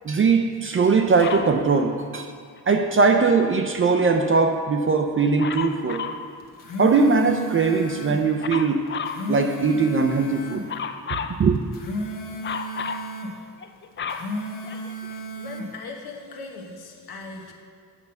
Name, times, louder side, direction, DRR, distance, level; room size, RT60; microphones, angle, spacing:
voice 1, 0.0-2.3 2.7-6.1 6.8-8.8 9.3-10.6 11.4-11.6, right 4 dB, 35° right, 5 dB, 0.4 m, -20 dB
Dog, 1.2-1.6 5.4-6.3 8.4-9.2 10.7-11.4 12.4-13.1 13.6-15.1 15.9-16.0, left 6 dB, 30° left, 0.4 m, -31 dB
sound 1, 6.4-8.2 8.9-10.7 11.6-13.4 14.0-15.7, equal, 60° left, 1.2 m, -33 dB
voice 2, 15.4-17.5, left 3 dB, 90° left, 2 dB, 1.2 m, -39 dB
8.4 x 5.3 x 6.8 m, 2.2 s
wide cardioid pair, 155°, 37 cm